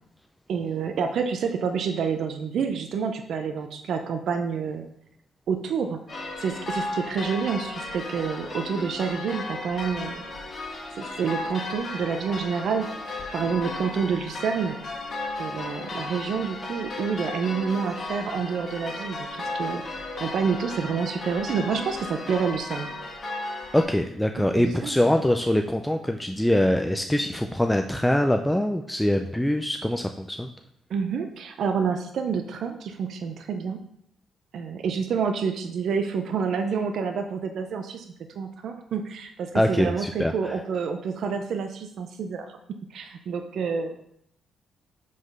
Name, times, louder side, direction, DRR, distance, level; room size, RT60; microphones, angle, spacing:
voice 1, 0.5-4.9 5.5-6.0 6.4-10.2 11.0-12.9 13.3-14.8 15.4-19.8 20.2-22.9 24.4-25.0 30.9-33.8 34.5-38.1 38.4-42.5 42.9-44.1, right 6 dB, 65° right, 6 dB, 0.5 m, -28 dB
sound 1, 6.1-23.8, left 2 dB, 35° left, 1.4 m, -35 dB
voice 2, 23.7-30.5 39.5-40.6, left 1 dB, 5° left, 4 dB, 0.4 m, -23 dB
5.0 x 4.0 x 5.4 m, 0.73 s
cardioid pair, 90°, 0 cm